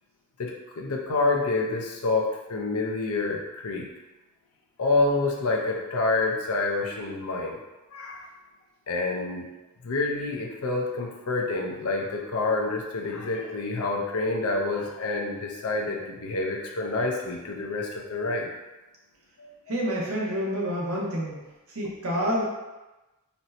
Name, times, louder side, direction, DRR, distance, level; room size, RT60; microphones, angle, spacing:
voice 1, 0.4-3.9 4.8-7.6 7.9-8.3 8.9-9.5 9.8-18.5 19.4-19.5, left 3 dB, 80° left, 1 dB, 0.6 m, -28 dB
voice 2, 19.7-21.4 21.7-22.4, equal, 70° right, -4 dB, 0.9 m, -28 dB
4.2 x 2.1 x 2.7 m, 1.1 s
head